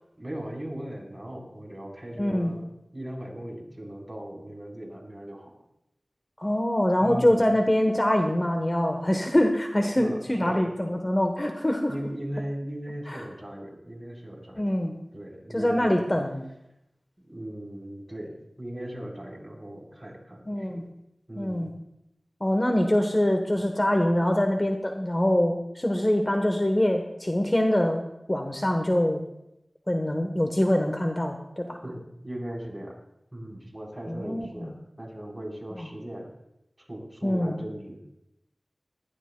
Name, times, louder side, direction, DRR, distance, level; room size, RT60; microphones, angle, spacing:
voice 1, 0.2-2.7 2.9-5.5 7.0-7.4 9.9-10.7 11.9-14.8 15.1-16.0 17.2-20.8 21.3-21.7 31.8-33.0 33.3-36.3 36.8-38.2, right 1 dB, 20° right, -1 dB, 3.9 m, -38 dB
voice 2, 2.2-2.5 6.4-11.9 13.1-13.2 14.6-14.9 15.5-16.5 20.5-20.8 21.4-21.7 22.4-28.0 28.3-29.2 29.9-31.8 34.1-34.7 35.8-35.9 37.2-37.6, left 1 dB, 25° left, 4 dB, 1.0 m, -24 dB
20.5 x 14.0 x 2.2 m, 0.86 s
wide cardioid pair, 60°, 0 cm